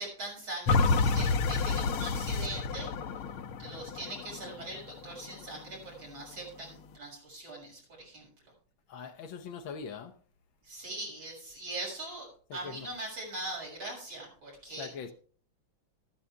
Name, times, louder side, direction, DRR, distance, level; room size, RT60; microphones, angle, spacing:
voice 1, 0.0-2.9 3.6-8.3 10.6-14.9, right 2 dB, 70° right, 7.4 m, -41 dB
sound 1, 0.7-5.7 6.2-6.3, left 4 dB, 85° left, 1.8 m, -29 dB
voice 2, 8.9-10.2 12.5-12.9 14.7-15.1, left 6 dB, 70° left, 1.7 m, -42 dB
14.0 x 12.5 x 3.4 m
omnidirectional pair, 2.3 m